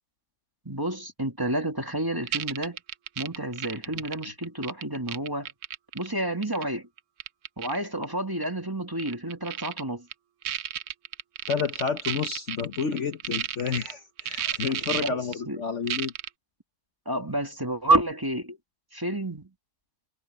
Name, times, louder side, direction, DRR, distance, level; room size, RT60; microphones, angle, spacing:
voice 1, 0.7-2.8 3.2-5.5 5.9-6.9 7.6-10.1 14.4-14.5 14.9-15.2 15.5-15.6 17.1-18.6 18.9-19.5, right 1 dB, 15° right, 2.2 m, -29 dB
sound 1, 2.3-6.1 6.4-6.6 7.0-7.8 8.0-8.1 8.4-8.5 9.0-9.8 10.1-10.2 10.4-13.9 14.2-15.3 15.9-16.3, right 10 dB, 60° right, 0.9 m, -32 dB
voice 2, 11.5-16.1, left 6 dB, 55° left, 1.2 m, -30 dB
omnidirectional pair, 1.6 m